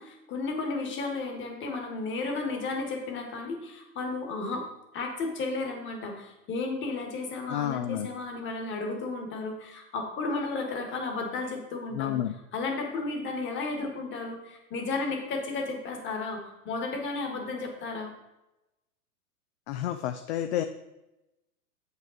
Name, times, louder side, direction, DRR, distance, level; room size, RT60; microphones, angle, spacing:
voice 1, 0.0-4.7 4.9-12.2 12.5-18.1, left 3 dB, 25° left, 3 dB, 1.4 m, -33 dB
voice 2, 7.5-8.1 11.9-12.3 19.7-20.6, left 12 dB, 45° left, 8 dB, 0.4 m, -30 dB
7.6 x 5.4 x 3.9 m, 0.96 s
hypercardioid pair, 125°, 47 cm